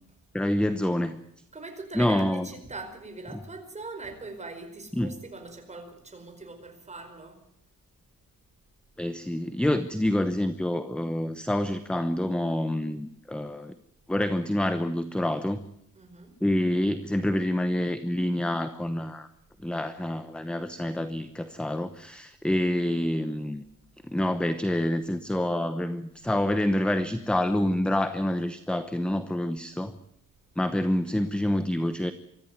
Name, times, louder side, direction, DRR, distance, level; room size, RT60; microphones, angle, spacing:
voice 1, 0.3-1.2 1.9-2.5 5.0-5.1 9.0-13.7 14.1-15.6 16.4-19.3 19.6-23.6 24.0-29.9 30.6-32.1, left 1 dB, 5° left, 10 dB, 0.9 m, -27 dB
voice 2, 1.5-7.4 15.9-16.3, right 3 dB, 20° right, 5 dB, 4.8 m, -41 dB
24.0 x 14.0 x 9.5 m, 0.76 s
wide cardioid pair, 160°, 33 cm